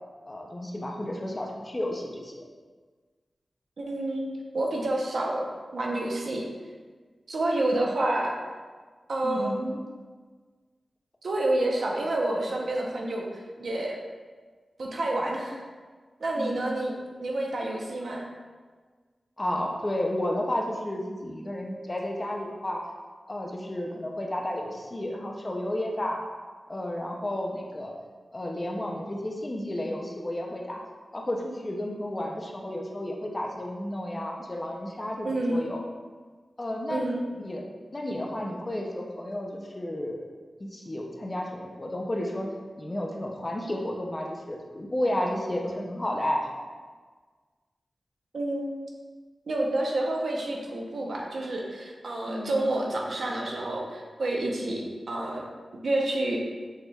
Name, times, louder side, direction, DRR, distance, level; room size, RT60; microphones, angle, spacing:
voice 1, 0.2-2.5 9.2-9.6 16.4-16.6 19.4-22.8 23.3-26.2 26.7-27.9 28.3-30.8 31.1-35.8 36.6-37.1 37.4-37.6 37.9-40.3 40.6-42.5 42.8-46.7 52.3-52.6, left 1 dB, 25° left, 0 dB, 0.5 m, -32 dB
voice 2, 3.8-4.3 4.5-5.4 5.7-6.4 7.3-8.4 9.1-9.8 11.2-13.3 13.6-14.0 14.8-15.6 16.2-16.9 17.2-18.3 35.2-35.6 36.9-37.3 48.3-48.8 49.5-55.5 55.8-56.4, right 1 dB, 75° right, -1 dB, 0.7 m, -28 dB
6.3 x 3.2 x 2.3 m, 1.5 s
wide cardioid pair, 125°, 0 cm